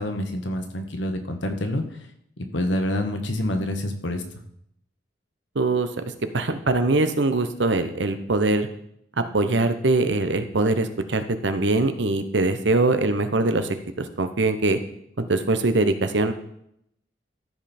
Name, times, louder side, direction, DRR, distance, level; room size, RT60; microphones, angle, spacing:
voice 1, 0.0-1.8 2.4-4.2, left 1 dB, 85° left, 6 dB, 1.3 m, -27 dB
voice 2, 5.5-5.9 6.3-8.7 9.2-13.7 14.0-14.8 15.2-16.3, right 2 dB, 75° right, 10 dB, 0.9 m, -22 dB
13.5 x 5.3 x 4.3 m, 0.73 s
head